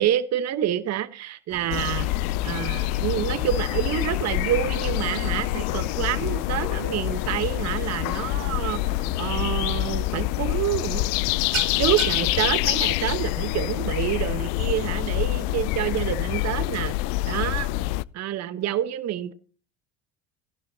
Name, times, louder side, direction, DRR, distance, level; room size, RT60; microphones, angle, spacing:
voice 1, 0.0-2.1 2.4-11.1 11.8-16.9 17.2-17.7 18.1-19.3, right 11 dB, 45° right, 1.2 m, -27 dB
sound 1, 1.5-9.7, right 2 dB, ahead, 1.9 m, -44 dB
sound 2, 1.7-18.0, left 18 dB, 60° left, 0.5 m, -26 dB
sound 3, 9.9-10.2 10.5-10.8 11.0-17.9, right 17 dB, 85° right, 0.7 m, -40 dB
16.5 x 11.5 x 2.8 m
hypercardioid pair, 75°, 37 cm